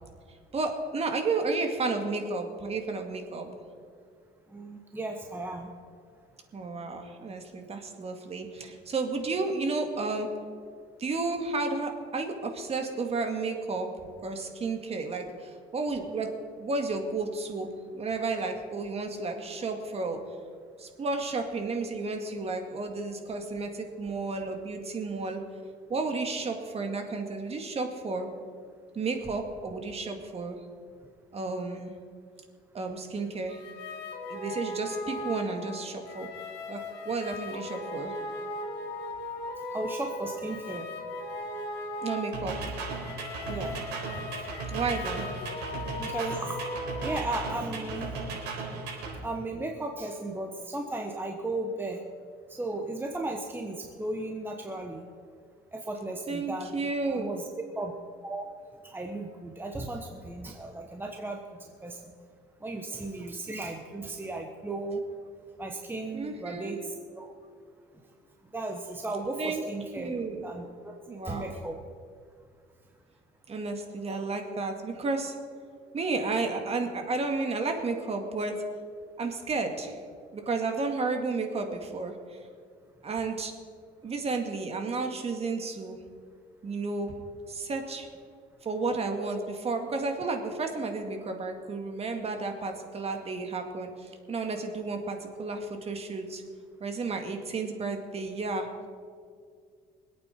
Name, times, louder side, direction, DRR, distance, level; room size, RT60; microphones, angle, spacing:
voice 1, 0.5-3.5 6.5-10.3 11.0-13.9 14.2-16.3 16.6-17.7 17.9-20.2 20.8-25.4 25.9-28.3 28.9-30.6 31.3-31.9 32.7-33.6 34.3-36.3 36.7-38.1 42.0-42.6 44.7-45.3 56.3-57.3 66.1-66.7 69.4-69.6 70.0-70.4 71.1-71.5 73.5-75.3 75.9-78.6 79.2-80.0 80.3-82.4 83.0-83.5 84.0-86.0 86.6-87.2 87.5-88.1 88.6-96.4 96.8-98.7, right 3 dB, 35° right, 4 dB, 2.0 m, -32 dB
voice 2, 4.5-5.7 37.5-37.6 39.7-40.9 43.5-43.8 46.0-46.6 47.0-48.1 49.2-52.0 52.5-55.1 55.7-57.9 58.2-58.4 58.8-62.0 62.6-65.0 65.6-67.3 68.5-70.1 70.4-70.9 71.2-71.8 81.7-81.8, right 2 dB, 10° right, 2 dB, 1.2 m, -35 dB
sound 1, 33.5-47.2, left 2 dB, 90° left, 1.8 m, -38 dB
sound 2, 42.3-49.2, right 3 dB, 85° right, 4.2 m, -36 dB
24.5 x 8.8 x 4.5 m, 2.1 s
cardioid pair, 110°, 17 cm